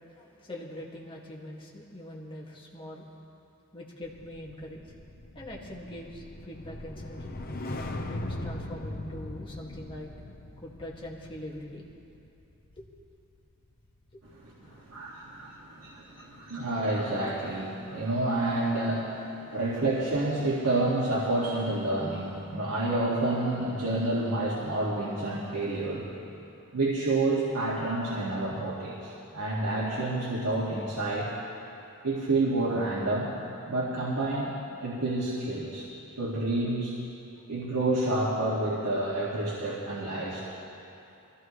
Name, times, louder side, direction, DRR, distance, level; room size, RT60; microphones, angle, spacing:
voice 1, 0.2-3.1 3.7-4.8 5.3-7.4 8.0-10.1 10.6-11.8 12.8-12.9 14.1-14.2 14.6-14.8 15.1-15.2 16.2-16.3 17.9-18.0, left 1 dB, 25° left, -4 dB, 2.0 m, -43 dB
sound 1, 4.0-14.4 14.8-15.1, left 1 dB, 45° left, 0.9 m, -40 dB
voice 2, 14.3-26.2 26.7-31.3 32.0-33.3 33.7-35.9 36.2-37.0 37.5-40.5, right 2 dB, 85° right, -6 dB, 2.1 m, -29 dB
22.0 x 15.0 x 3.2 m, 2.8 s
head